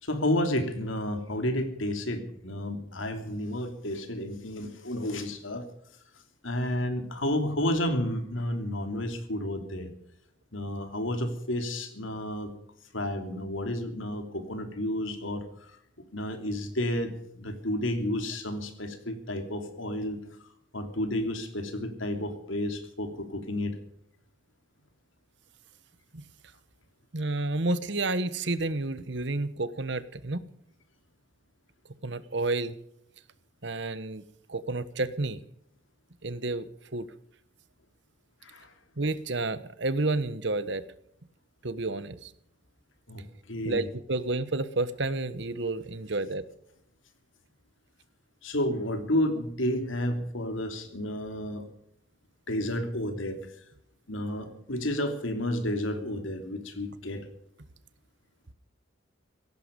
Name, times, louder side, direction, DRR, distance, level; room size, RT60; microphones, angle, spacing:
voice 1, 0.0-5.6 6.4-9.9 10.5-12.5 12.9-15.7 16.1-23.8 38.4-38.7 43.1-43.9 48.4-51.7 52.5-53.4 54.1-57.3, left 1 dB, 80° left, 7 dB, 3.0 m, -31 dB
voice 2, 27.1-30.5 32.0-32.8 33.6-34.2 34.5-35.4 36.2-36.7 36.9-37.1 39.0-40.8 41.6-42.3 43.6-46.4, right 2 dB, 65° right, 15 dB, 1.2 m, -30 dB
17.0 x 15.0 x 5.3 m, 0.72 s
head